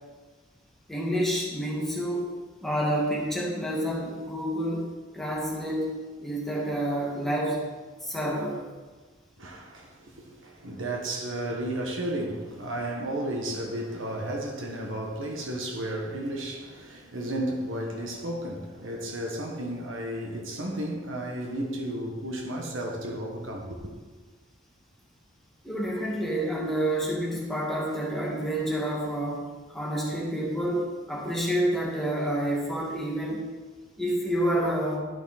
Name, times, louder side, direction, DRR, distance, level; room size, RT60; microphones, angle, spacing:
voice 1, 0.9-2.2 2.6-4.8 5.1-5.9 6.2-7.6 8.0-8.6 25.6-29.4 29.7-33.4 34.0-35.0, right 1 dB, ahead, 2.0 m, -28 dB
voice 2, 9.4-9.9 10.4-23.9, right 1 dB, 75° right, 1.6 m, -33 dB
11.5 x 6.1 x 4.3 m
head